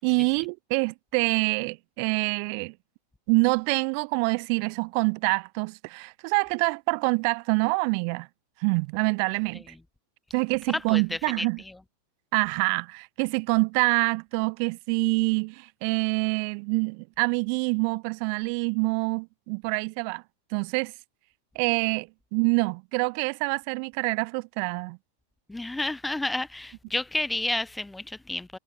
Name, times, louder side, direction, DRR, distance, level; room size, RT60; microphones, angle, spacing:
voice 1, 0.0-2.7 3.3-8.3 8.6-9.7 10.3-11.6 12.3-20.2 20.5-20.9 21.5-25.0, right 40 dB or more, 45° right, 8.0 m, -26 dB
voice 2, 25.5-28.6, left 2 dB, 5° left, 3.2 m, -30 dB
figure-of-eight pair, 90°, 0 cm